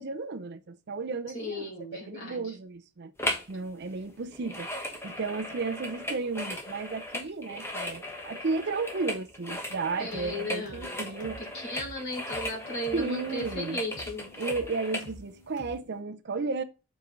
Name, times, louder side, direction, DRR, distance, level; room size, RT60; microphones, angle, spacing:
voice 1, 0.0-3.1 3.5-4.7 5.0-11.4 12.9-13.8 14.4-16.6, right 4 dB, 50° right, 0.5 m, -33 dB
voice 2, 1.3-2.4 10.0-11.1 11.5-14.3, left 1 dB, 55° left, 4.3 m, -36 dB
sound 1, 3.2-3.5 3.8-15.1 15.6-15.7, left 1 dB, 10° left, 1.0 m, -37 dB
sound 2, 9.9-15.7, left 1 dB, 80° left, 3.4 m, -49 dB
6.7 x 4.8 x 3.9 m
head